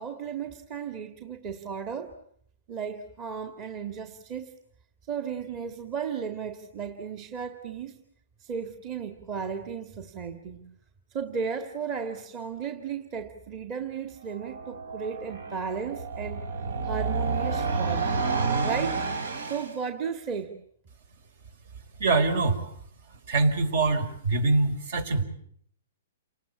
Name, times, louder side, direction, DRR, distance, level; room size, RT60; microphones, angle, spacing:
voice 1, 0.0-2.1 2.7-4.5 5.1-8.0 8.4-10.6 11.1-16.4 16.8-18.1 18.6-19.0 19.5-20.6, right 6 dB, 30° right, 7 dB, 2.0 m, -35 dB
sound 1, 14.3-19.8, right 4 dB, 80° right, 3.6 m, -30 dB
voice 2, 22.0-22.6 23.3-25.2, right 3 dB, 60° right, 11 dB, 5.2 m, -24 dB
29.0 x 19.5 x 8.5 m, 0.65 s
hypercardioid pair, 155°, 0 cm